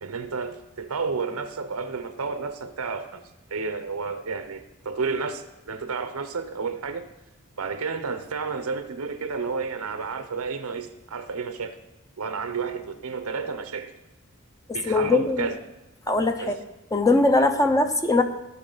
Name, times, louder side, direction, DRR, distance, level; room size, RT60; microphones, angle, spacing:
voice 1, 0.0-3.2 3.5-7.1 7.6-11.8 12.2-13.9 14.7-15.6 16.4-16.6, right 4 dB, 90° right, 10 dB, 0.7 m, -31 dB
voice 2, 14.9-15.4 16.1-16.5 16.9-18.2, left 2 dB, 15° left, 7 dB, 0.6 m, -21 dB
17.0 x 5.7 x 3.9 m, 0.98 s
head